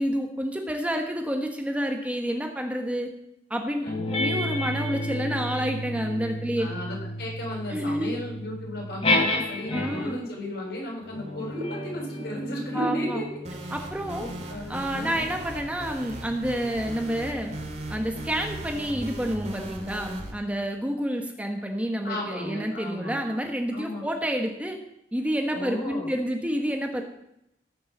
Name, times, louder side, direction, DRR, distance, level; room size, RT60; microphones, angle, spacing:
voice 1, 0.0-3.1 3.5-3.8 4.1-6.7 7.7-8.2 9.7-10.2 12.7-13.2 13.7-14.3 14.7-17.5 17.9-24.8 25.1-27.0, equal, 10° right, 3 dB, 1.2 m, -29 dB
voice 2, 3.8-4.1 6.6-13.3 13.6-13.7 14.2-15.3 22.0-23.2 23.7-24.1 25.5-26.1, left 1 dB, 65° left, -1 dB, 6.9 m, -34 dB
sound 1, 3.9-10.3 11.0-15.9, left 1 dB, 35° left, 4.2 m, -31 dB
sound 2, 13.4-20.3, right 1 dB, 40° right, 2.4 m, -38 dB
17.0 x 7.2 x 7.3 m, 0.81 s
head